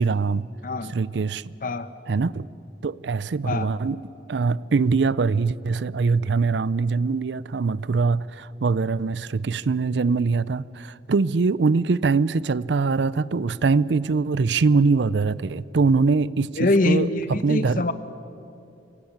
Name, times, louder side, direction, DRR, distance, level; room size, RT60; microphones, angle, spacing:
voice 1, 0.0-0.5 0.9-1.5 2.1-2.5 2.8-4.0 4.3-17.8, right 4 dB, 70° right, 0.5 m, -23 dB
voice 2, 16.5-17.9, left 2 dB, 50° left, 1.1 m, -23 dB
25.5 x 17.5 x 8.7 m
head